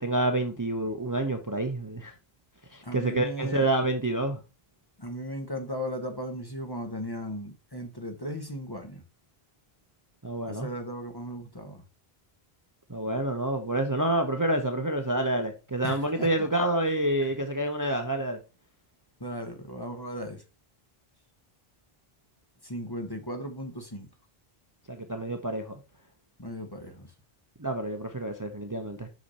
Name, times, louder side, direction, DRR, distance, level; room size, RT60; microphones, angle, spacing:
voice 1, 0.0-2.1 2.7-4.4 10.2-10.7 12.9-18.4 24.9-25.7 27.6-29.1, right 1 dB, 20° right, 0.8 m, -28 dB
voice 2, 2.8-3.7 5.0-9.0 10.5-11.8 15.8-16.5 19.2-20.4 22.6-24.1 26.4-27.1, equal, 25° left, 1.2 m, -36 dB
6.4 x 5.9 x 4.1 m
omnidirectional pair, 1.0 m